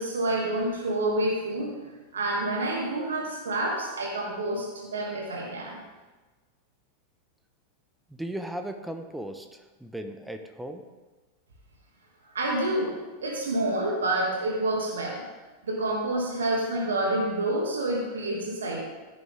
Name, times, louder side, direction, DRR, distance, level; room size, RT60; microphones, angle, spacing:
voice 1, 0.0-1.7 2.1-5.8 12.3-15.3 15.6-18.8, right 1 dB, 65° right, -1 dB, 2.4 m, -28 dB
voice 2, 8.1-10.8, right 1 dB, 5° right, 6 dB, 1.0 m, -37 dB
16.0 x 9.4 x 3.6 m, 1.2 s
figure-of-eight pair, 90°, 0 cm